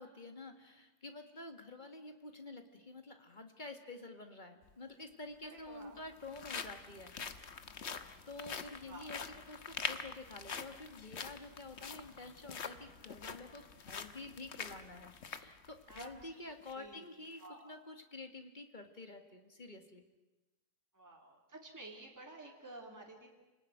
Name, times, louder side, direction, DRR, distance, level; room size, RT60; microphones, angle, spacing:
voice 1, 0.0-7.6 8.3-20.0, left 2 dB, 30° left, 6 dB, 2.1 m, -49 dB
sound 1, 4.6-4.7 5.7-16.2 16.6-16.7 17.2-17.5, left 6 dB, 45° left, 1.3 m, -45 dB
voice 2, 5.5-5.9 8.8-9.1 15.9-16.1 16.4-17.0 17.4-17.7 20.9-23.3, right 2 dB, 10° right, 0 dB, 3.1 m, -52 dB
28.0 x 19.0 x 9.3 m, 1.1 s
omnidirectional pair, 1.7 m